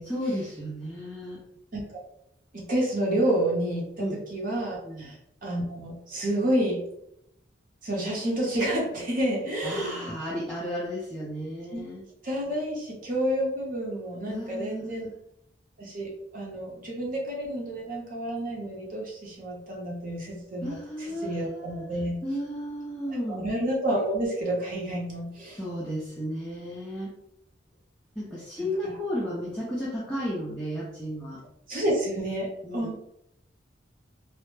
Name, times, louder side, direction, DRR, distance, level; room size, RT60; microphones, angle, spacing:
voice 1, 0.0-1.4 4.0-4.2 4.8-5.1 9.6-12.0 14.3-15.1 20.6-21.8 22.2-23.5 25.6-27.1 28.2-31.4 32.6-32.9, equal, 5° left, -7 dB, 0.3 m, -33 dB
voice 2, 2.5-6.8 7.8-10.1 11.7-11.9 12.2-15.1 15.8-22.2 23.1-25.6 28.6-29.0 31.7-33.0, right 1 dB, 45° right, -3 dB, 0.7 m, -29 dB
2.0 x 2.0 x 3.0 m, 0.76 s
head